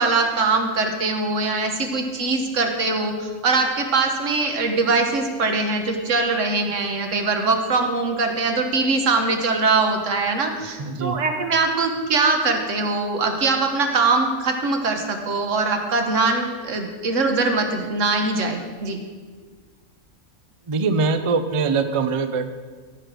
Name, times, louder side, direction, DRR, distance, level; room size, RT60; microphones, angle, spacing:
voice 1, 0.0-19.0, right 3 dB, 65° right, 4 dB, 1.4 m, -22 dB
voice 2, 10.8-11.2 20.7-22.5, right 4 dB, 50° right, 9 dB, 0.4 m, -22 dB
14.0 x 5.0 x 6.2 m, 1.5 s
omnidirectional pair, 1.4 m